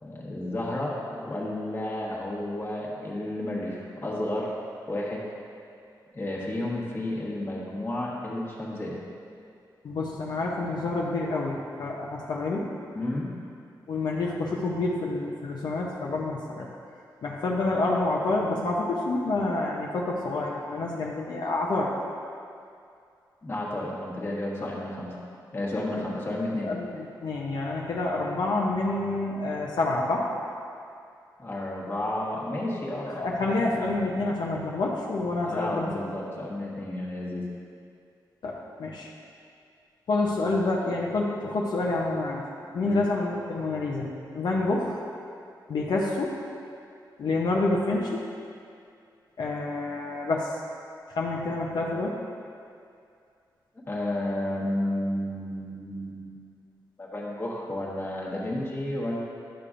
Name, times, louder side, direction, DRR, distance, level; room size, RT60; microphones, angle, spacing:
voice 1, 0.0-4.5 4.9-5.2 6.1-9.0 12.9-13.3 23.4-25.1 25.5-26.7 31.4-33.4 33.9-34.0 35.4-37.5 42.8-43.0 53.9-56.4 57.0-59.2, left 1 dB, 30° left, -5 dB, 1.4 m, -32 dB
voice 2, 9.8-12.7 13.9-16.7 17.2-21.9 24.6-24.7 26.6-30.3 33.1-35.9 38.4-39.1 40.1-42.4 42.7-45.0 45.7-46.4 47.2-48.2 49.4-50.6 51.1-52.2, left 2 dB, 70° left, -3 dB, 0.7 m, -28 dB
11.5 x 6.7 x 2.5 m, 2.4 s
wide cardioid pair, 135°, 8 cm